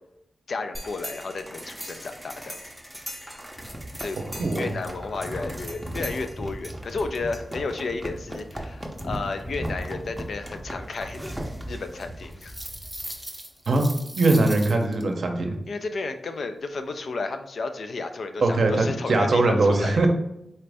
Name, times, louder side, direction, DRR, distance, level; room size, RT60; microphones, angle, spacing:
voice 1, 0.5-2.6 4.0-4.2 4.5-11.4 11.7-12.6 15.7-20.1, left 3 dB, 65° left, 7 dB, 0.4 m, -32 dB
sound 1, 0.7-15.0, equal, 5° right, 0.6 m, -36 dB
voice 2, 14.2-15.6 18.4-20.1, right 2 dB, 60° right, 4 dB, 0.6 m, -21 dB
4.2 x 2.5 x 3.3 m, 0.82 s
wide cardioid pair, 125°, 0 cm